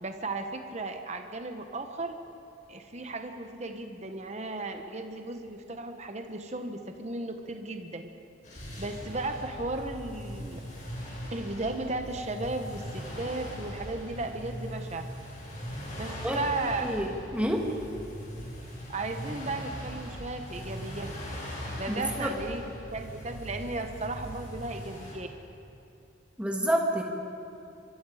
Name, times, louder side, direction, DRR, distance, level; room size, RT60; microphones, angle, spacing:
voice 1, 0.0-2.2 2.7-8.0 8.8-10.6 11.3-15.1 16.0-16.9 18.9-21.1 21.8-25.3, right 2 dB, 35° right, 5 dB, 1.2 m, -35 dB
sound 1, 8.4-25.1, equal, 40° left, 6.2 m, -40 dB
voice 2, 16.8-17.7 22.0-22.4 26.4-27.0, equal, 5° right, 0 dB, 2.2 m, -28 dB
24.5 x 24.0 x 5.0 m, 2.7 s
head